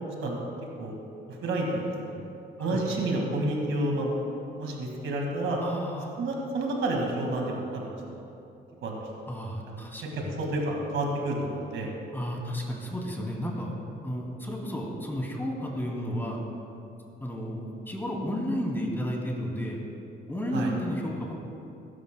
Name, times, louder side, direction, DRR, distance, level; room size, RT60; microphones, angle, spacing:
voice 1, 0.2-0.5 0.8-0.9 1.3-2.2 2.6-4.2 4.6-5.6 6.2-8.2 8.8-9.0 9.7-9.9 10.4-11.9 20.5-20.7, right 2 dB, 75° right, 0 dB, 2.0 m, -30 dB
voice 2, 5.6-6.1 9.3-10.3 12.1-13.7 14.0-16.4 17.2-19.8 20.3-21.3, equal, 10° left, -2 dB, 2.6 m, -32 dB
16.5 x 12.5 x 2.2 m, 2.7 s
cardioid pair, 90°, 20 cm